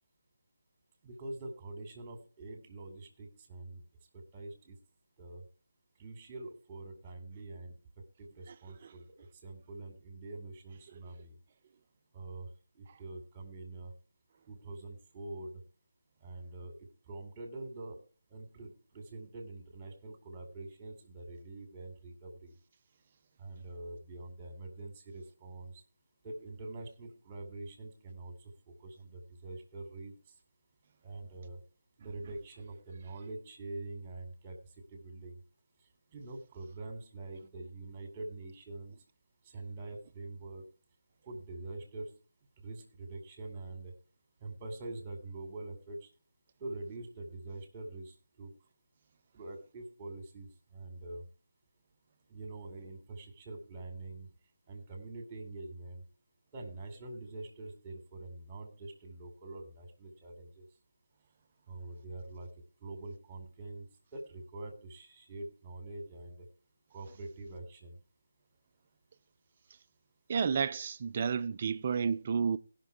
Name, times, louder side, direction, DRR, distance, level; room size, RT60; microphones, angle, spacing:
voice 1, 1.0-3.8 4.1-4.8 5.2-5.4 6.0-11.4 12.1-12.5 12.7-13.9 14.5-15.6 16.2-16.7 17.1-18.0 18.3-22.6 23.4-25.8 26.2-30.3 31.0-31.6 32.0-35.4 36.1-39.0 39.4-40.7 41.3-42.1 42.6-43.9 44.4-46.1 46.6-48.5 49.3-51.2 52.3-54.3 54.7-56.0 56.5-60.7 61.7-62.5 62.8-66.5 66.9-68.0, right 2 dB, 15° right, 2.4 m, -45 dB
voice 2, 70.3-72.6, right 6 dB, 35° right, 0.5 m, -31 dB
18.0 x 6.0 x 4.6 m
figure-of-eight pair, 155°, 0 cm